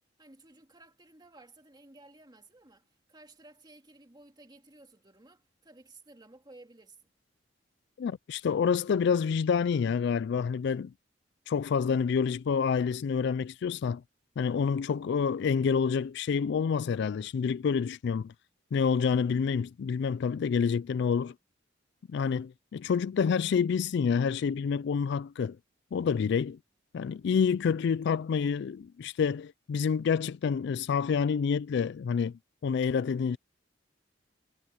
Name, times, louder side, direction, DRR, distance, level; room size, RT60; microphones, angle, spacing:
voice 1, 0.2-7.1, right 2 dB, 25° right, 2.1 m, -55 dB
voice 2, 8.0-10.9 11.5-14.0 14.4-18.3 18.7-21.3 22.1-25.6 25.9-26.6 26.9-32.3 32.6-33.4, left 6 dB, 65° left, 0.3 m, -28 dB
head